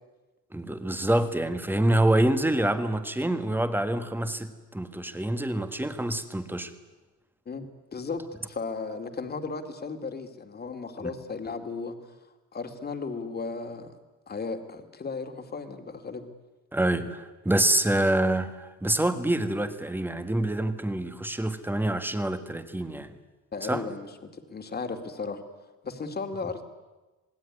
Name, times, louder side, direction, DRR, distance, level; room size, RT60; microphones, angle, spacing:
voice 1, 0.5-6.7 16.7-23.1 23.6-23.9, right 1 dB, 5° right, 1.6 m, -26 dB
voice 2, 7.5-12.0 12.5-13.9 14.3-16.3 23.5-25.4 25.8-26.6, left 4 dB, 30° left, 2.4 m, -35 dB
27.0 x 20.5 x 9.8 m
cardioid pair, 160°, 30 cm